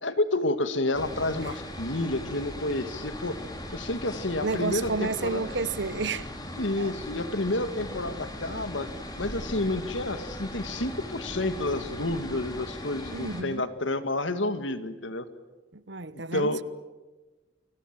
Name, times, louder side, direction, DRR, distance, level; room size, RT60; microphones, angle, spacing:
voice 1, 0.0-3.4 3.7-5.4 6.6-8.9 9.2-15.3 16.1-16.6, left 2 dB, 80° left, 2.1 m, -30 dB
sound 1, 0.9-13.4, left 1 dB, 20° left, 3.9 m, -39 dB
voice 2, 4.4-6.3 6.8-6.9 13.1-13.7 15.7-16.6, right 3 dB, 70° right, 1.0 m, -31 dB
29.5 x 24.0 x 7.6 m
head